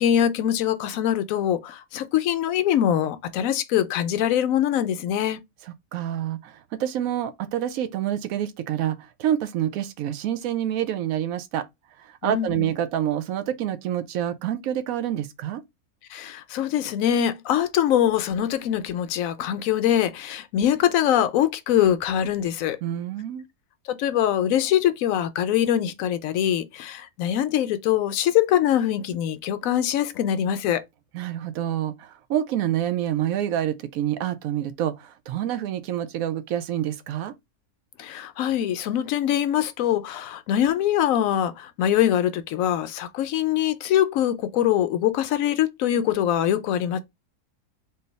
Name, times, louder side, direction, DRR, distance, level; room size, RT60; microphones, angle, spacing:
voice 1, 0.0-5.4 12.2-12.7 16.1-22.8 23.9-30.8 38.0-47.0, left 10 dB, 70° left, 0.9 m, -23 dB
voice 2, 5.9-11.7 12.0-15.6 22.8-23.4 31.1-37.3, right 11 dB, 75° right, 1.0 m, -27 dB
3.8 x 2.6 x 4.0 m
omnidirectional pair, 1.5 m